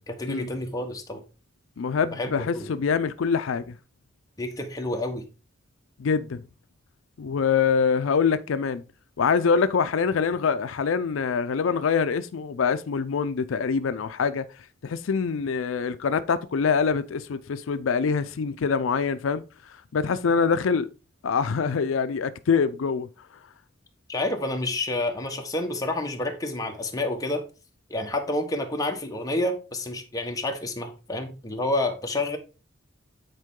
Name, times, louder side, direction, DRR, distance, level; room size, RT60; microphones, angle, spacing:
voice 1, 0.1-1.2 2.1-2.7 4.4-5.2 24.1-27.4 27.9-32.4, left 2 dB, 20° left, 1.2 m, -29 dB
voice 2, 1.8-3.7 6.0-6.4 7.2-8.8 9.2-14.5 14.8-19.4 19.9-20.9 21.2-23.1, left 5 dB, 80° left, 0.4 m, -24 dB
9.2 x 4.5 x 3.7 m
head